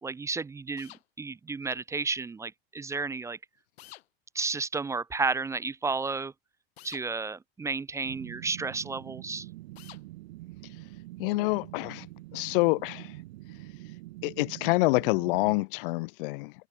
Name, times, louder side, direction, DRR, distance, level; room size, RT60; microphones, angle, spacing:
voice 1, 0.0-3.4 4.3-6.3 6.8-9.5, right 4 dB, 10° right, 0.5 m, -32 dB
sound 1, 0.8-1.0 3.8-4.1 6.8-7.0 9.8-10.0, left 15 dB, 85° left, 5.6 m, -49 dB
sound 2, 8.1-15.6, right 18 dB, 80° right, 1.7 m, -45 dB
voice 2, 11.2-12.1 12.3-13.1 14.2-16.5, left 25 dB, 65° left, 0.5 m, -27 dB
supercardioid pair, 145°, 30 cm